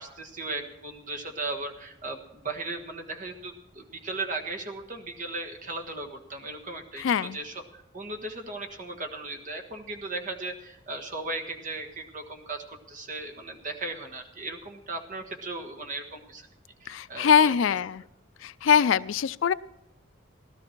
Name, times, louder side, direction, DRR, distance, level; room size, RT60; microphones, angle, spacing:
voice 1, 0.0-16.5 16.8-17.6, right 2 dB, 40° right, 3 dB, 1.5 m, -37 dB
voice 2, 7.0-7.4 16.9-18.0 18.4-19.5, left 7 dB, 80° left, 18 dB, 0.4 m, -23 dB
16.5 x 12.5 x 4.6 m, 0.86 s
head